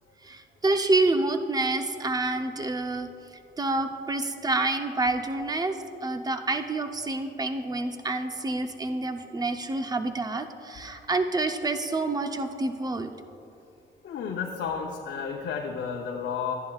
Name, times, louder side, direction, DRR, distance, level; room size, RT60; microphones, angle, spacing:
voice 1, 0.2-3.1 3.6-13.1, right 2 dB, 20° right, 7 dB, 0.7 m, -28 dB
voice 2, 14.0-16.5, left 6 dB, 65° left, 0 dB, 0.8 m, -32 dB
13.5 x 10.5 x 2.4 m, 2.6 s
cardioid pair, 90°, 20 cm